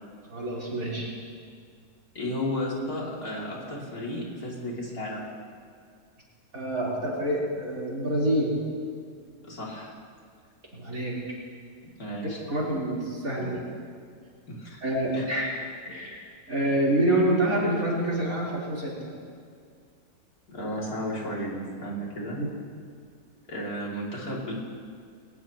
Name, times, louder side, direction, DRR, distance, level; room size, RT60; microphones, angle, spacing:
voice 1, 0.3-1.1 6.5-8.5 10.7-11.1 12.5-13.6 14.8-15.5 15.9-16.2 16.5-19.1 22.4-22.5, right 1 dB, 65° right, -6 dB, 4.3 m, -27 dB
voice 2, 2.1-5.3 9.4-9.9 11.8-12.4 14.5-14.8 15.1-15.2 20.5-22.4 23.5-24.5, left 1 dB, 75° left, -4 dB, 3.3 m, -33 dB
21.0 x 18.5 x 3.0 m, 2.1 s
omnidirectional pair, 1.6 m